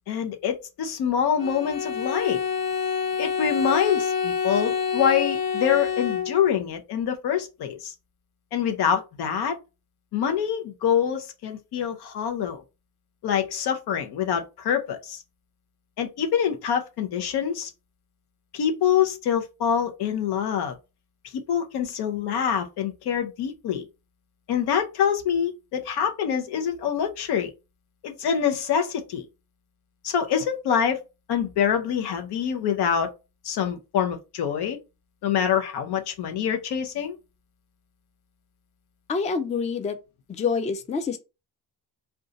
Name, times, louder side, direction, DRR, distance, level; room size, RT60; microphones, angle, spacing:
voice 1, 0.1-2.4 3.2-7.9 8.5-9.6 10.1-12.6 13.2-15.2 16.0-17.7 18.5-20.8 21.5-23.9 24.5-27.5 28.0-29.2 30.0-31.0 31.3-33.1 33.4-34.8 35.2-37.2, left 8 dB, 85° left, 0.7 m, -25 dB
Bowed string instrument, 1.4-6.6, left 6 dB, 55° left, 0.7 m, -27 dB
voice 2, 39.1-40.0 40.3-41.2, left 5 dB, 20° left, 0.3 m, -26 dB
2.6 x 2.3 x 3.8 m
cardioid pair, 125°, 38 cm